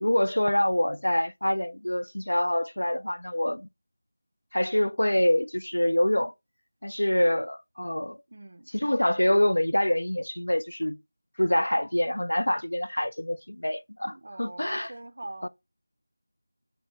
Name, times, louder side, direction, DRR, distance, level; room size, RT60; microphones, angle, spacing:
voice 1, 0.0-3.7 4.5-6.3 6.8-8.2 8.7-11.0 11.4-14.9 15.4-15.5, left 1 dB, 85° left, 0.3 m, -25 dB
voice 2, 8.3-8.7 14.0-15.5, right 2 dB, 55° right, 0.5 m, -43 dB
5.3 x 2.0 x 4.5 m
figure-of-eight pair, 170°, 0 cm